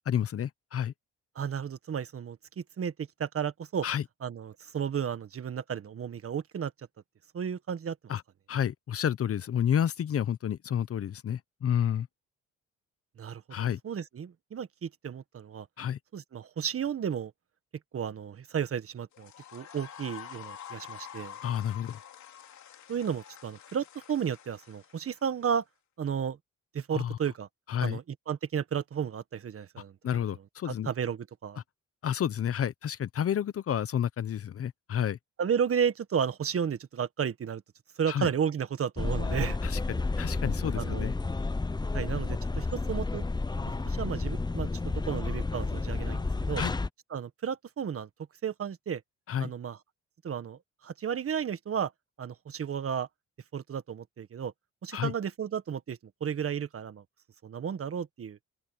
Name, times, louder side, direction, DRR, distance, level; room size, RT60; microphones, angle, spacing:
voice 1, 0.1-0.9 3.8-4.0 8.1-8.2 8.5-12.1 13.5-13.8 15.8-16.0 21.4-22.0 26.9-27.2 27.7-28.0 30.0-30.9 31.6-31.7 32.0-35.2 38.1-38.3 39.6-41.1 46.6-46.7 49.3-49.5 54.9-55.1, left 9 dB, 50° left, 0.9 m, -30 dB
voice 2, 1.3-3.9 4.2-6.7 7.3-7.9 13.2-15.7 16.1-17.3 17.9-21.4 22.9-25.6 26.0-26.4 26.7-27.5 27.8-29.9 30.6-31.6 35.4-37.6 38.0-39.6 40.7-41.1 41.9-43.2 43.8-46.6 47.1-48.1 48.4-49.0 49.4-49.8 50.2-51.9 52.2-53.1 53.5-54.5 54.8-57.0 57.4-58.4, right 7 dB, 50° right, 1.6 m, -33 dB
sound 1, 19.1-25.4, left 10 dB, 70° left, 3.7 m, -47 dB
sound 2, 39.0-46.9, left 3 dB, 15° left, 0.8 m, -31 dB
open air
cardioid pair, 90°, 30 cm